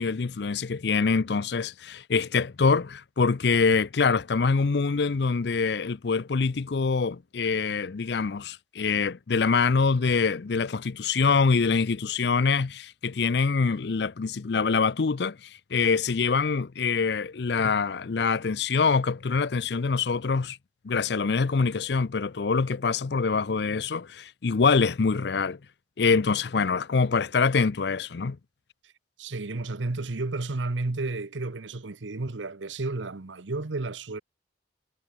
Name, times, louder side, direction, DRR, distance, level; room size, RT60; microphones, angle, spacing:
voice 1, 0.0-20.6 20.8-25.6 26.0-28.4, left 5 dB, 65° left, 0.5 m, -25 dB
voice 2, 29.2-34.2, right 2 dB, 85° right, 1.0 m, -32 dB
head